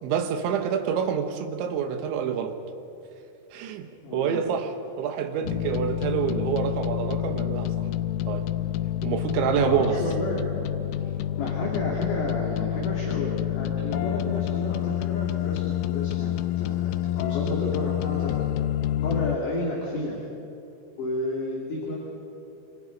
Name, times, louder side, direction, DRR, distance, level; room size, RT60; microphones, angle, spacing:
voice 1, 0.0-2.6 3.5-7.9 8.3-8.5 9.0-10.0, right 7 dB, 70° right, 3.3 m, -27 dB
voice 2, 4.0-4.5 9.6-10.7 11.4-18.5 19.0-20.2 21.0-22.0, left 1 dB, 45° left, 3.6 m, -31 dB
sound 1, 5.4-19.4, left 12 dB, 85° left, 3.3 m, -28 dB
27.0 x 25.5 x 5.3 m
omnidirectional pair, 5.9 m